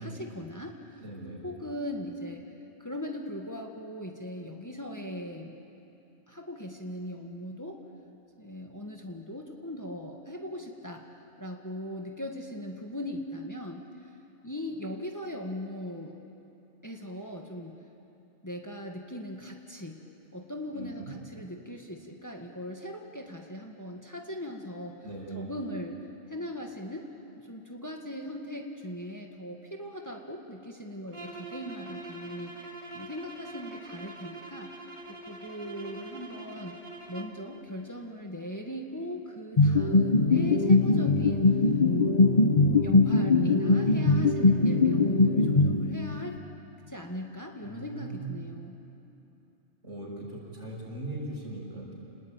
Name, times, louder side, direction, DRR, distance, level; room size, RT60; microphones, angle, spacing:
voice 1, 0.0-1.0 1.4-2.4 2.8-5.6 6.3-7.8 8.4-11.0 11.4-13.8 14.4-16.2 16.8-17.8 18.4-20.0 20.3-25.0 25.3-26.0 26.3-27.1 27.4-32.5 32.9-34.7 35.1-36.8 37.1-41.7 42.2-46.4 46.9-48.8, left 1 dB, 15° left, 2 dB, 1.8 m, -39 dB
voice 2, 1.0-1.4 20.7-21.1 25.0-25.5 47.6-48.4 49.8-51.9, right 2 dB, 75° right, -4 dB, 6.8 m, -39 dB
sound 1, 31.1-37.4, right 2 dB, 25° right, 1.9 m, -44 dB
sound 2, 39.6-46.3, left 3 dB, 35° left, 1.1 m, -22 dB
30.0 x 20.5 x 9.1 m, 2.8 s
omnidirectional pair, 1.2 m